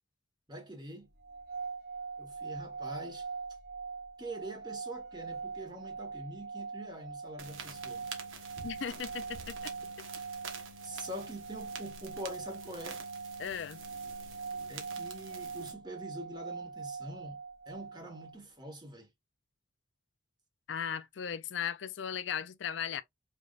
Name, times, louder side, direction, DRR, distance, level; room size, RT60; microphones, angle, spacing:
voice 1, 0.5-1.1 2.2-3.3 4.2-8.1 10.8-13.0 14.7-17.4 17.7-19.1, right 1 dB, 20° right, 1.4 m, -44 dB
sound 1, 1.2-18.4, right 5 dB, 50° right, 0.5 m, -42 dB
sound 2, 7.4-15.7, right 4 dB, 90° right, 1.3 m, -47 dB
voice 2, 8.6-9.7 13.4-13.8 20.7-23.0, left 8 dB, 65° left, 0.4 m, -37 dB
5.1 x 3.3 x 2.5 m
head